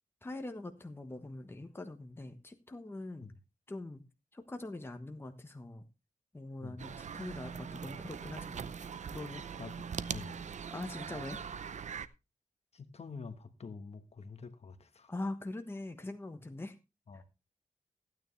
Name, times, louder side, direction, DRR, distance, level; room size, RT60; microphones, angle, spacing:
voice 1, 0.2-3.3 3.7-4.0 4.3-5.8 6.3-8.7 9.1-9.4 10.7-11.4 15.1-16.8, left 2 dB, 15° left, 1.2 m, -43 dB
sound 1, 6.8-12.1, right 7 dB, 65° right, 0.6 m, -41 dB
voice 2, 10.1-10.5 12.7-15.1 17.1-17.2, left 4 dB, 55° left, 1.3 m, -47 dB
15.0 x 9.4 x 3.3 m
wide cardioid pair, 125°, 13 cm